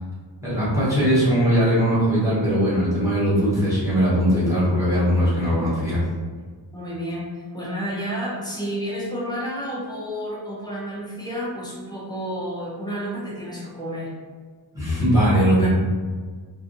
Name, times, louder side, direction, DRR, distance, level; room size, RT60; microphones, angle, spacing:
voice 1, 0.4-6.0 14.7-15.7, equal, 5° right, -9 dB, 0.9 m, -20 dB
voice 2, 6.7-14.1 15.4-15.7, equal, 10° left, -6 dB, 0.5 m, -31 dB
2.6 x 2.5 x 2.4 m, 1.5 s
wide cardioid pair, 175°, 44 cm